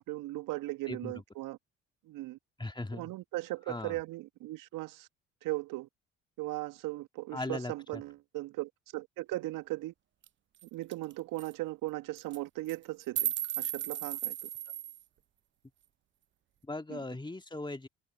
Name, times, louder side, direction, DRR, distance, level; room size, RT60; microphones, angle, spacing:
voice 1, 0.0-1.6 2.1-2.4 2.9-5.1 5.4-5.9 6.4-9.9 10.7-14.5 16.9-17.0, right 18 dB, 60° right, 1.7 m, -38 dB
voice 2, 0.9-1.2 2.6-3.1 3.7-4.0 7.3-8.0 16.6-17.9, left 2 dB, 10° left, 2.3 m, -39 dB
sound 1, 10.2-10.3 10.6-10.7 10.9-11.1 11.4-11.5 12.2-12.4 12.7-15.0, right 11 dB, 30° right, 0.5 m, -35 dB
hypercardioid pair, 55°, 36 cm